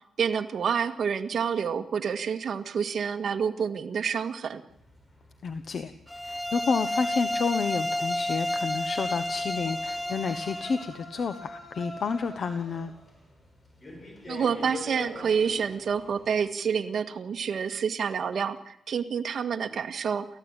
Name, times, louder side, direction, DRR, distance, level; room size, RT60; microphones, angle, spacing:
voice 1, 0.2-4.6 14.3-20.2, right 6 dB, 50° right, 5 dB, 1.7 m, -28 dB
sound 1, 4.7-16.4, left 1 dB, 25° left, 5.2 m, -46 dB
voice 2, 5.4-5.9 6.2-12.9, left 5 dB, 50° left, 10 dB, 1.1 m, -30 dB
sound 2, 6.1-10.9, left 1 dB, 5° left, 0.9 m, -31 dB
30.0 x 14.5 x 9.0 m, 0.77 s
wide cardioid pair, 150°, 0 cm